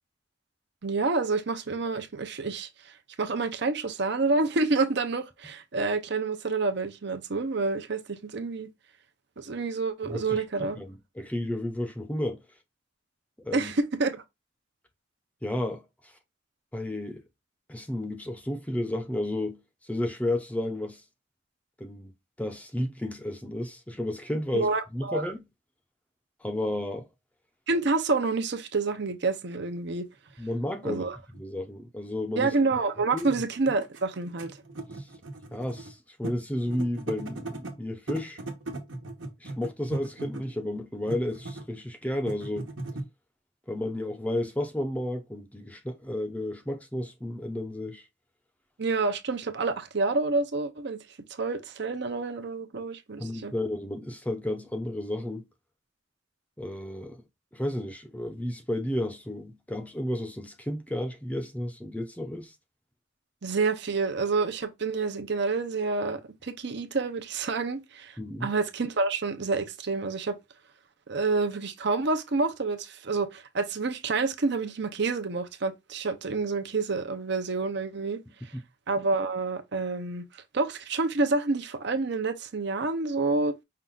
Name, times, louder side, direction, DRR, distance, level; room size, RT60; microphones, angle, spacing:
voice 1, 0.8-2.7 3.2-8.7 9.4-10.8 13.5-14.2 24.5-24.8 25.1-25.3 27.7-30.1 30.8-31.2 32.4-34.6 48.8-51.0 51.4-53.5 63.4-68.1 68.4-70.4 71.1-78.2 78.9-80.2 80.5-83.6, right 3 dB, 60° right, 0.8 m, -28 dB
voice 2, 10.0-12.4 13.4-13.7 15.4-15.8 16.7-17.2 17.7-19.6 19.9-21.0 21.8-22.1 22.4-25.5 26.4-27.1 30.4-32.5 33.0-33.3 35.0-35.1 35.5-38.4 39.4-42.7 43.7-48.1 53.2-55.5 56.6-57.2 57.5-62.5 68.2-68.5 78.5-78.6, left 1 dB, 10° left, 0.6 m, -32 dB
sound 1, 30.3-30.4 31.3-31.4 32.8-32.9 33.1-35.9 36.2-36.4 36.7-37.7 38.1-40.5 41.0-41.8 42.1-43.0, right 2 dB, 85° right, 1.2 m, -37 dB
5.6 x 2.5 x 3.7 m
head